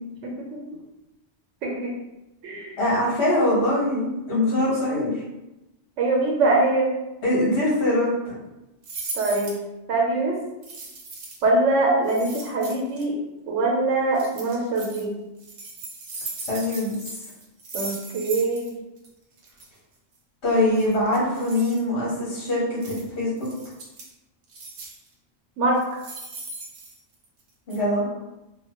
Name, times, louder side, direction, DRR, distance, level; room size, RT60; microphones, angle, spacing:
voice 1, 0.2-0.6 1.6-1.9 2.4-2.7 6.0-6.9 9.1-9.5 9.9-10.3 11.4-13.1 13.5-15.1 17.7-18.7 25.6-25.8, right 2 dB, 85° right, -1 dB, 1.0 m, -23 dB
voice 2, 2.8-5.1 7.2-8.3 16.5-16.9 20.4-23.5 27.7-28.1, left 1 dB, 65° left, -6 dB, 1.4 m, -23 dB
sound 1, 8.8-9.6 10.6-11.5 12.0-13.0 14.1-15.0 15.4-18.7 19.0-19.1 19.4-19.7 20.8-21.8 22.8-23.0 23.4-24.1 24.5-25.1 25.7-27.4 27.7-27.8, right 3 dB, 60° right, 0.8 m, -38 dB
3.0 x 2.2 x 2.8 m, 0.96 s
omnidirectional pair, 1.2 m